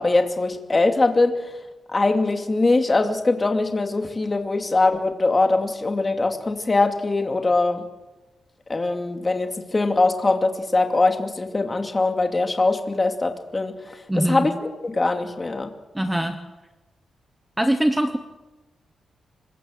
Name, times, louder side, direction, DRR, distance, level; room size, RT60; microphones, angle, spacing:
voice 1, 0.0-1.4 1.9-7.8 8.7-14.5 14.8-15.7, left 3 dB, 20° left, 5 dB, 2.4 m, -22 dB
voice 2, 14.1-14.5 15.9-16.4 17.6-18.2, right 1 dB, 5° right, 7 dB, 1.1 m, -22 dB
26.0 x 21.5 x 7.7 m, 1.1 s
wide cardioid pair, 165°, 0 cm